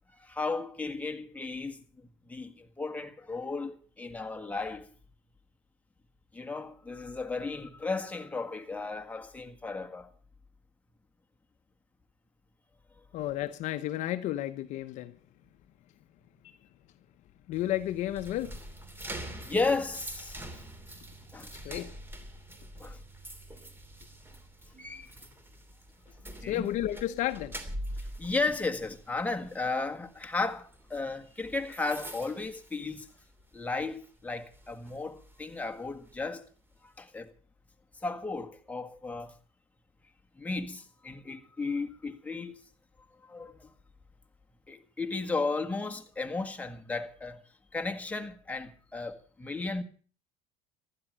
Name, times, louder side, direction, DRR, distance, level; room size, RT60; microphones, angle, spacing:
voice 1, 0.2-1.8 2.3-4.9 6.3-10.1 19.5-20.5 21.3-21.8 22.8-23.0 24.8-25.1 26.4-26.7 28.2-33.1 33.5-36.5 37.0-37.3 38.0-39.3 40.4-42.6 43.2-43.7 44.7-47.4 47.7-49.8, left 3 dB, 10° left, 1.7 m, -34 dB
voice 2, 13.1-15.2 17.5-18.6 21.6-22.0 26.5-27.6, left 13 dB, 55° left, 0.9 m, -32 dB
sound 1, 17.5-33.4 33.8-34.1 34.5-36.2, right 1 dB, 15° right, 3.0 m, -45 dB
15.0 x 12.5 x 6.3 m
supercardioid pair, 110°, 14 cm